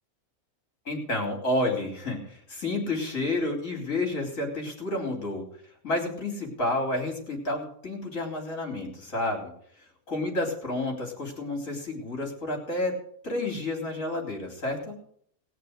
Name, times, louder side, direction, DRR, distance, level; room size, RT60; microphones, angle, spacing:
voice 1, 0.9-5.5 5.8-9.5 10.1-12.9 13.2-15.0, left 2 dB, 55° left, 1 dB, 4.2 m, -30 dB
19.5 x 6.7 x 6.6 m, 0.64 s
omnidirectional pair, 1.6 m